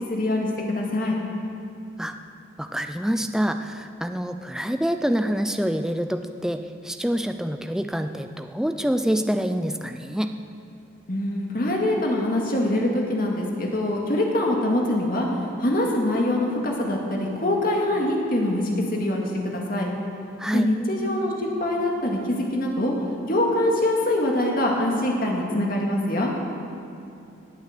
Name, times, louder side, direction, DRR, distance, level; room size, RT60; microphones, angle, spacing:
voice 1, 0.1-1.2 11.1-15.3 15.6-18.6 18.9-19.9 20.5-22.9 23.3-26.3, left 1 dB, 45° left, -1 dB, 2.2 m, -24 dB
voice 2, 2.6-10.3 20.4-20.7, equal, 5° right, 7 dB, 0.5 m, -26 dB
18.0 x 8.3 x 6.7 m, 2.7 s
head